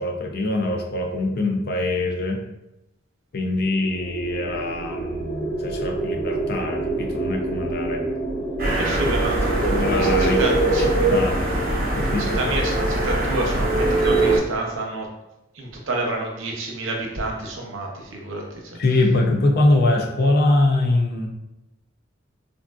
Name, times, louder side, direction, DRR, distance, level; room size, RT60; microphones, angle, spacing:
voice 1, 0.0-2.4 3.3-8.0 8.7-9.0 9.6-10.4 10.8-11.4 11.9-12.4 18.8-21.3, left 2 dB, 55° left, 3 dB, 0.5 m, -23 dB
sound 1, 3.5-10.6, right 2 dB, 20° left, 0.9 m, -29 dB
sound 2, 8.6-14.4, right 2 dB, 50° right, 0.8 m, -21 dB
voice 2, 8.8-10.9 12.2-15.1 15.5-18.8, right 2 dB, 85° right, 0 dB, 0.7 m, -29 dB
3.6 x 2.5 x 2.3 m, 0.91 s
head